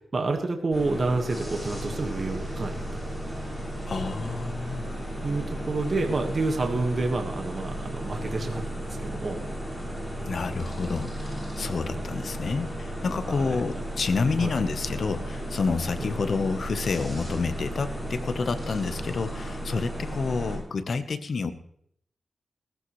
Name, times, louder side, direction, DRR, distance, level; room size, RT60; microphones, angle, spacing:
voice 1, 0.0-2.8 5.2-9.4 11.9-12.0 13.2-13.8 14.4-14.6 16.0-16.1, right 3 dB, 45° right, 4 dB, 1.6 m, -29 dB
sound 1, 0.7-20.6, equal, 5° left, 7.3 m, -34 dB
voice 2, 3.9-4.9 10.2-21.5, left 4 dB, 60° left, 10 dB, 1.0 m, -29 dB
18.0 x 14.5 x 3.2 m, 0.69 s
wide cardioid pair, 105°, 0 cm